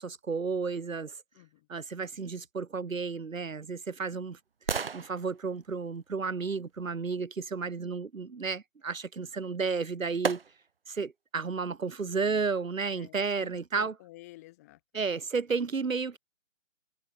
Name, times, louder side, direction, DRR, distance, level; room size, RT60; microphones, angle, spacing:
voice 1, 0.0-1.2 1.7-4.4 4.9-10.4 10.9-14.0 14.9-16.2, right 5 dB, 75° right, 4.7 m, -32 dB
voice 2, 1.3-1.7 12.9-14.8, left 18 dB, 10° left, 2.9 m, -52 dB
sound 1, 3.1-7.2 9.3-9.4 10.2-10.9 11.4-11.5, right 5 dB, 45° right, 1.1 m, -38 dB
hypercardioid pair, 180°, 40 cm